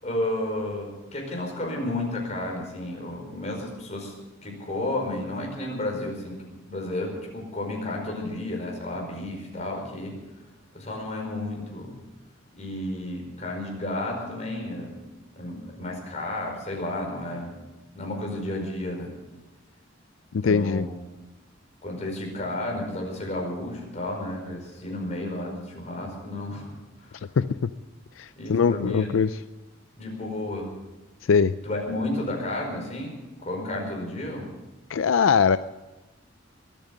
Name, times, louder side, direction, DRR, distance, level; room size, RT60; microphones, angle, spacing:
voice 1, 0.0-4.1 4.4-10.1 10.7-12.0 12.5-15.0 15.3-17.5 17.9-19.1 20.4-20.9 21.8-26.7 27.0-27.2 28.4-29.1 30.0-30.7 31.6-34.5, left 1 dB, 35° left, 0 dB, 5.0 m, -32 dB
voice 2, 20.3-20.8 27.4-27.7 28.2-29.3 31.3-31.5 34.9-35.6, left 6 dB, 85° left, 13 dB, 0.4 m, -21 dB
22.0 x 9.1 x 7.2 m, 1.1 s
head